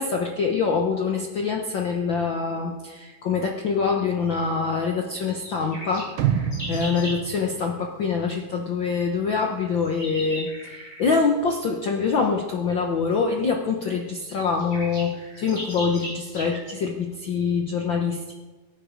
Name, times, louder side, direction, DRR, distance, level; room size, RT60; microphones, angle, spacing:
voice 1, 0.0-6.1 6.7-18.3, left 5 dB, 90° left, 2 dB, 1.0 m, -25 dB
sound 1, 5.3-7.2 9.3-11.3 13.1-13.2 13.8-13.9 14.1-16.8, equal, 15° left, 5.2 m, -38 dB
sound 2, 6.2-8.3 8.7-8.8, right 9 dB, 90° right, 2.9 m, -28 dB
23.0 x 9.6 x 5.2 m, 1.3 s
omnidirectional pair, 3.9 m